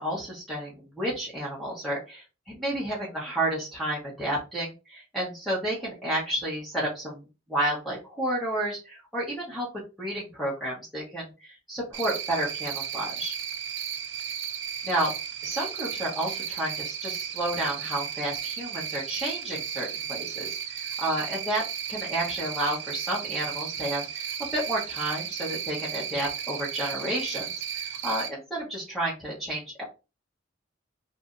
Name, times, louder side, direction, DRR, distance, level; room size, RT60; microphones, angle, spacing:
voice 1, 0.0-9.7 10.0-13.3 14.8-15.1 15.4-21.6 21.9-29.8, right 1 dB, ahead, -6 dB, 1.1 m, -31 dB
Cricket, 11.9-28.3, right 8 dB, 70° right, 0.6 m, -34 dB
2.7 x 2.6 x 3.6 m, 0.29 s
head